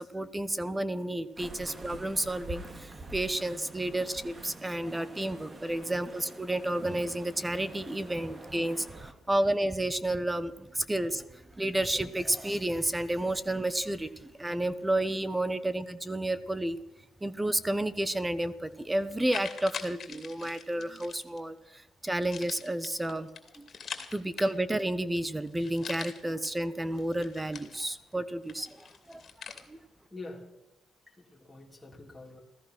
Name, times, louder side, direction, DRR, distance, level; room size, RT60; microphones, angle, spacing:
voice 1, 0.0-16.8 17.2-23.3 23.5-23.7 24.1-29.2 29.7-29.8, right 1 dB, 15° right, 15 dB, 1.0 m, -31 dB
sound 1, 1.4-9.1, right 2 dB, 30° right, 2.0 m, -46 dB
sound 2, 18.4-18.5 19.0-21.4 22.2-24.8 25.2-25.3 25.5-26.5 26.9-28.1 28.5-29.6, left 6 dB, 50° left, 2.5 m, -43 dB
voice 2, 30.1-30.5 31.1-32.4, left 2 dB, 10° left, -2 dB, 2.7 m, -46 dB
16.0 x 14.0 x 6.1 m, 0.93 s
cardioid pair, 90°, 0 cm